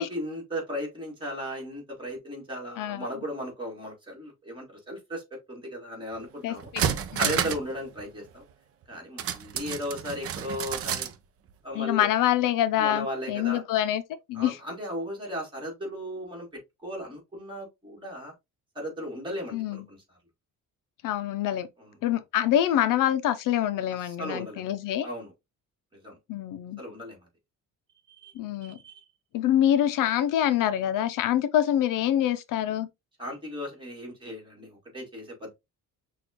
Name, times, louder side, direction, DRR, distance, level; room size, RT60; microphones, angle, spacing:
voice 1, 0.0-6.7 7.2-8.4 8.9-11.1 11.6-12.1 12.8-13.6 14.3-16.5 16.8-18.3 18.8-20.0 21.8-21.9 24.0-24.6 25.0-25.3 25.9-26.2 26.8-27.2 28.1-28.3 28.6-29.0 33.2-35.5, equal, 15° right, 2.0 m, -36 dB
voice 2, 2.8-3.1 6.4-6.8 7.2-7.4 11.8-14.0 14.3-14.6 19.5-19.9 21.0-21.7 22.0-25.1 26.3-26.8 28.3-28.8 29.3-32.9, left 11 dB, 75° left, 0.5 m, -25 dB
sound 1, 6.1-6.2 6.6-7.7 8.0-8.1 9.2-11.2 11.5-11.6, right 9 dB, 45° right, 0.5 m, -30 dB
5.9 x 2.4 x 2.8 m
cardioid pair, 155°, 33 cm